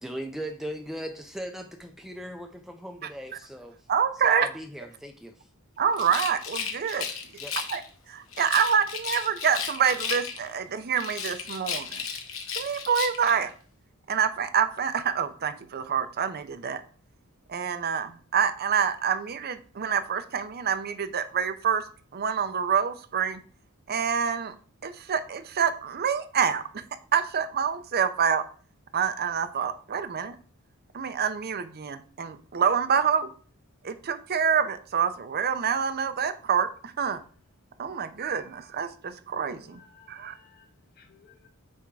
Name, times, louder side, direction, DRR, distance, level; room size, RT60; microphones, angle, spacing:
voice 1, 0.0-3.8 4.2-5.3 7.4-7.5, equal, ahead, 0.5 m, -38 dB
voice 2, 3.9-4.5 5.8-7.1 7.7-7.8 8.1-12.0 12.6-13.5 14.1-16.8 17.5-21.8 22.1-23.4 23.9-24.5 24.8-26.8 27.1-28.4 28.9-30.3 30.9-33.3 33.8-37.2 37.8-39.8 40.1-40.3, right 7 dB, 45° right, 0.6 m, -27 dB
Rattle, 5.9-7.9 8.3-10.6 10.9-13.4, left 6 dB, 65° left, 1.1 m, -34 dB
voice 3, 39.2-41.5, left 6 dB, 45° left, 1.4 m, -58 dB
8.6 x 3.5 x 4.7 m
head